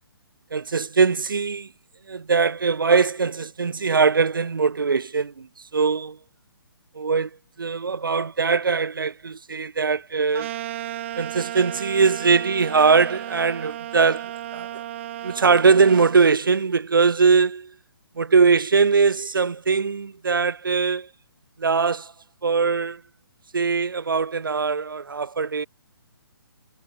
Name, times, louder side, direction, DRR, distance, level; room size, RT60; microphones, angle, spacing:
voice 1, 0.5-1.7 2.1-6.2 6.9-7.3 7.6-10.5 11.2-14.8 15.2-17.7 18.2-21.1 21.6-22.1 22.4-23.0 23.5-25.7, right 5 dB, 65° right, 0.9 m, -21 dB
sound 1, 10.3-16.2, right 13 dB, 30° right, 0.8 m, -34 dB
figure-of-eight pair, 135°, 12 cm